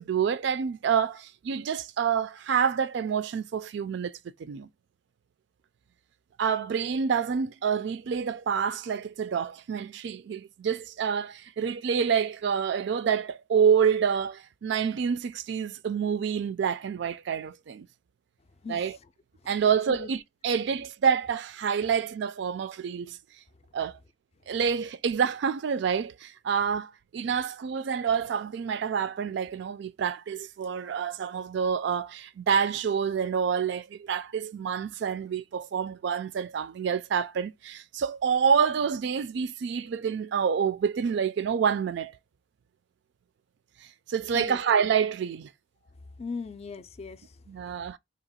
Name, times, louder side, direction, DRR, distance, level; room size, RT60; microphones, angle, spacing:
voice 1, 0.0-4.1 4.4-4.7 6.4-17.9 18.7-19.0 19.5-23.2 23.7-24.0 24.5-42.2 44.1-45.5 47.5-48.0, right 7 dB, 65° right, 0.3 m, -27 dB
voice 2, 18.6-18.9 19.4-19.6 19.9-20.1 44.3-44.6 46.2-47.4, left 4 dB, 35° left, 0.4 m, -38 dB
2.9 x 2.9 x 4.0 m
head